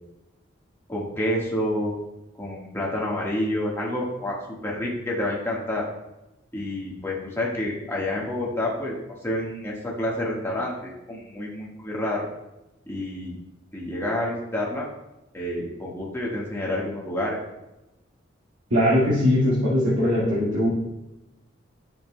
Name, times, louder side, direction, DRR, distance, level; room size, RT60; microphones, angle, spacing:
voice 1, 0.9-1.9 2.4-4.4 4.6-5.9 6.5-8.9 9.2-12.2 12.9-13.4 13.7-14.9 15.3-17.4, left 1 dB, 15° left, -4 dB, 1.5 m, -28 dB
voice 2, 18.7-20.7, left 1 dB, 85° right, -9 dB, 1.9 m, -20 dB
9.0 x 7.2 x 2.2 m, 0.95 s
head